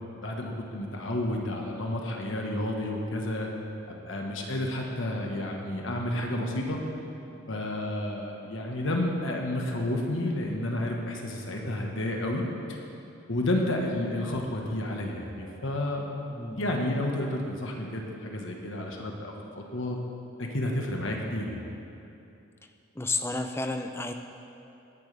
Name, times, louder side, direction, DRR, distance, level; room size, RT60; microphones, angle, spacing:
voice 1, 0.2-3.5 3.9-6.8 7.5-12.4 13.3-16.0 16.6-20.0 20.4-21.6, left 1 dB, 70° left, 0 dB, 1.4 m, -31 dB
voice 2, 16.3-16.8 23.0-24.1, left 2 dB, 10° left, 6 dB, 0.5 m, -31 dB
17.5 x 10.5 x 3.4 m, 2.8 s
head